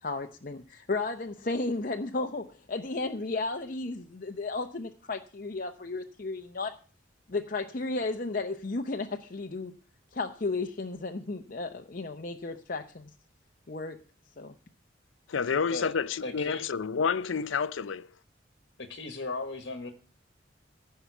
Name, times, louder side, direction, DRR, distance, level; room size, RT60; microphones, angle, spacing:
voice 1, 0.0-6.8 7.3-9.7 10.1-13.1 13.7-14.0 14.4-14.6, left 3 dB, 45° left, 0.7 m, -34 dB
voice 2, 15.3-18.1, left 6 dB, 90° left, 0.5 m, -29 dB
voice 3, 16.2-16.6 18.8-19.9, left 3 dB, 65° left, 1.3 m, -36 dB
15.0 x 5.7 x 6.9 m
head